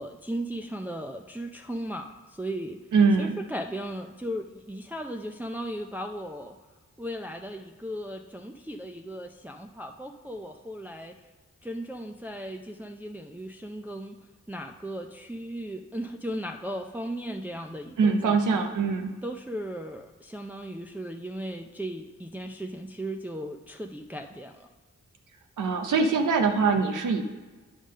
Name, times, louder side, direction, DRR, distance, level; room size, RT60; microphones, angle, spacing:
voice 1, 0.0-2.8 3.2-6.6 7.0-11.1 11.6-14.2 14.5-18.6 19.2-24.7, equal, 5° right, 2 dB, 0.5 m, -36 dB
voice 2, 2.9-3.4 18.0-19.1 25.6-27.2, right 4 dB, 85° right, 4 dB, 0.6 m, -23 dB
8.7 x 3.6 x 6.4 m, 1.3 s
cardioid pair, 45°, 30 cm